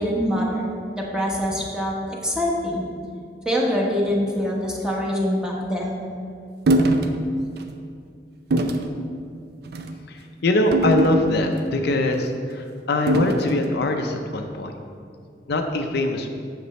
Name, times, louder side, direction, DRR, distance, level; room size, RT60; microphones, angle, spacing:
voice 1, 0.0-2.9 3.4-6.0, equal, 5° right, -3 dB, 1.1 m, -24 dB
sound 1, 6.7-7.1 7.6-7.7 8.5-8.9 9.7-10.0 10.7-11.6 13.1-13.6, right 1 dB, 65° right, 0.5 m, -22 dB
voice 2, 10.1-14.7 15.5-16.3, left 1 dB, 65° left, 4 dB, 0.5 m, -23 dB
8.0 x 6.7 x 3.1 m, 2.3 s
head